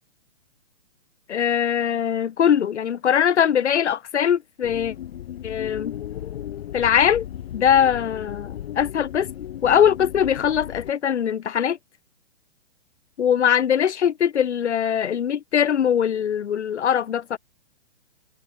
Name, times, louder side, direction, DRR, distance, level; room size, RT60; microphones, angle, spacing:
voice 1, 1.3-4.9 5.4-6.0 6.7-7.2 7.5-9.3 9.6-11.8 13.2-17.4, left 8 dB, 75° left, 2.4 m, -21 dB
sound 1, 4.6-10.9, left 11 dB, 55° left, 4.9 m, -35 dB
hypercardioid pair, 150°, 35 cm